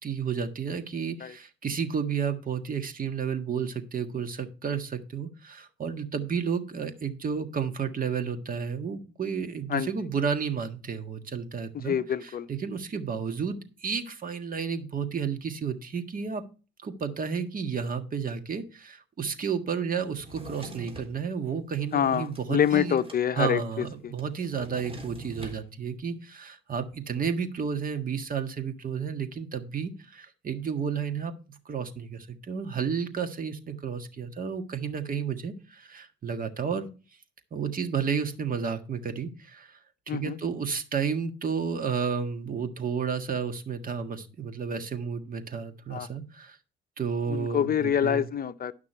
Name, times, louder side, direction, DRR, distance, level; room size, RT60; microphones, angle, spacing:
voice 1, 0.0-12.0 12.2-16.4 16.8-23.0 23.3-36.9 37.5-39.8 40.1-46.6 47.0-48.2, right 6 dB, 45° right, 1.6 m, -32 dB
voice 2, 11.7-12.5 21.9-24.1 40.1-40.4 45.9-46.1 47.3-48.7, left 9 dB, 50° left, 0.7 m, -26 dB
Drawer open or close, 20.1-21.1 21.7-23.2 23.5-23.6 23.8-25.6, right 2 dB, 30° right, 3.3 m, -44 dB
11.5 x 6.0 x 4.5 m
cardioid pair, 90°, 20 cm